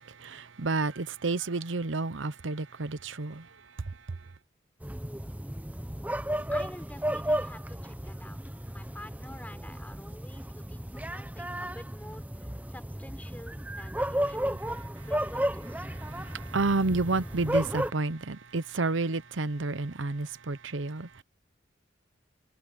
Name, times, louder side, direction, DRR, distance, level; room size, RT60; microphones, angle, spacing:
voice 1, 0.0-3.5 3.9-4.0 16.0-21.2, right 3 dB, 90° right, 0.9 m, -30 dB
sound 1, 4.8-17.9, right 1 dB, 10° right, 1.0 m, -33 dB
voice 2, 6.5-8.4 8.7-15.8, left 1 dB, 10° left, 4.7 m, -48 dB
head